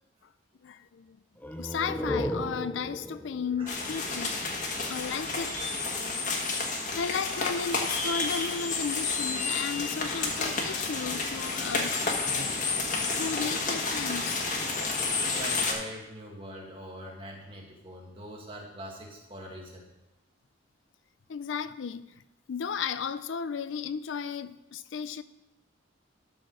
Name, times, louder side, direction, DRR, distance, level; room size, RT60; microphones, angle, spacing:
voice 1, 0.6-1.2 1.6-4.4 4.9-5.6 6.2-6.4 7.0-12.6 13.2-14.4 15.2-15.4 21.3-22.1 22.5-25.2, left 6 dB, 70° left, 0.4 m, -34 dB
sound 1, 1.4-4.9, left 1 dB, 10° left, 0.5 m, -36 dB
sound 2, 3.7-15.7, left 3 dB, 40° left, 1.3 m, -30 dB
voice 2, 15.3-19.9, equal, 25° right, 1.8 m, -43 dB
12.5 x 4.4 x 6.3 m
head